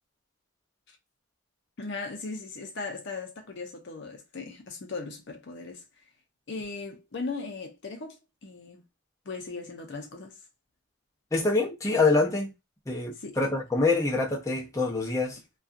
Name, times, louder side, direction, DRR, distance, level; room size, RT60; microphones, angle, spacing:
voice 1, 1.8-5.8 6.5-8.8 9.3-10.4 13.2-13.4, left 3 dB, 55° left, 0.6 m, -38 dB
voice 2, 11.3-12.5 12.9-15.4, left 3 dB, 15° left, 0.6 m, -25 dB
2.6 x 2.3 x 2.4 m
head